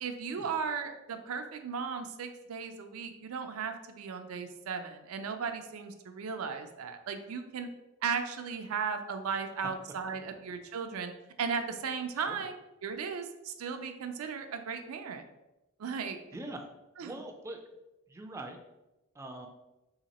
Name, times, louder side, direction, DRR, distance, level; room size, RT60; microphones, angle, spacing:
voice 1, 0.0-7.7 8.0-11.1 11.4-15.2 15.8-16.2 17.0-17.2, right 6 dB, 85° right, 7 dB, 0.4 m, -36 dB
voice 2, 16.3-16.6 17.0-17.6 18.1-18.6 19.1-19.5, right 2 dB, 15° right, 3 dB, 0.3 m, -42 dB
2.8 x 2.8 x 4.1 m, 0.97 s
head